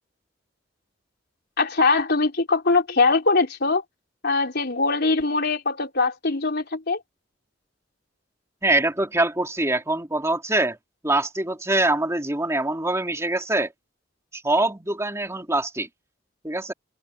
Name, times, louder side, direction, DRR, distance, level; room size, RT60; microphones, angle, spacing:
voice 1, 1.6-3.8 4.2-7.0, left 3 dB, 60° left, 3.8 m, -22 dB
voice 2, 8.6-10.8 11.0-13.7 14.3-15.9 16.4-16.7, right 2 dB, 15° right, 2.8 m, -24 dB
head